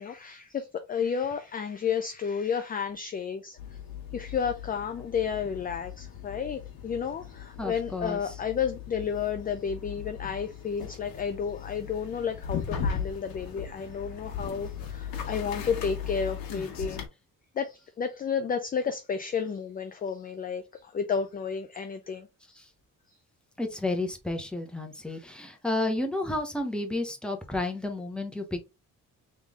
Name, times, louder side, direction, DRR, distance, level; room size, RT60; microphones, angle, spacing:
voice 1, 0.0-3.6 4.1-17.0 17.6-22.6, left 6 dB, 25° left, 0.4 m, -32 dB
sound 1, 3.6-17.1, left 7 dB, 90° left, 1.2 m, -38 dB
voice 2, 7.6-8.2 23.6-28.6, left 2 dB, 5° left, 0.7 m, -31 dB
3.7 x 3.2 x 3.5 m
cardioid pair, 145°, 35 cm